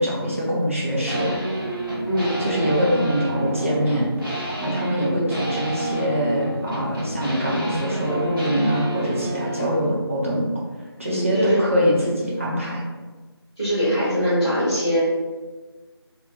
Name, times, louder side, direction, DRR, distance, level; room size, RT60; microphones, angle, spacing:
voice 1, 0.0-1.3 2.4-10.4 11.0-12.8, equal, 30° right, -6 dB, 0.6 m, -24 dB
sound 1, 1.1-9.7, right 1 dB, 55° right, 0.9 m, -29 dB
voice 2, 2.0-2.7 5.1-5.3 11.1-11.6 13.6-15.0, equal, 10° left, -18 dB, 0.6 m, -22 dB
2.4 x 2.3 x 2.9 m, 1.3 s
figure-of-eight pair, 170°, 14 cm